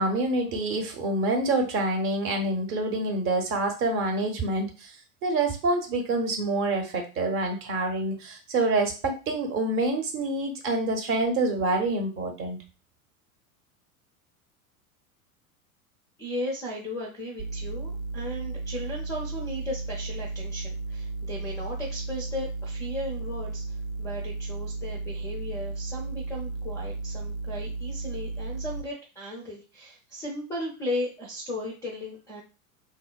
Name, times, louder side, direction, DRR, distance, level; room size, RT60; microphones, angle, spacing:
voice 1, 0.0-4.9 5.2-12.6, right 2 dB, 30° right, 3 dB, 0.7 m, -27 dB
voice 2, 16.2-32.4, left 1 dB, 10° left, -2 dB, 0.4 m, -36 dB
sound 1, 17.4-28.8, right 3 dB, 80° right, 0.5 m, -34 dB
3.5 x 2.1 x 2.2 m, 0.32 s
figure-of-eight pair, 85°, 43 cm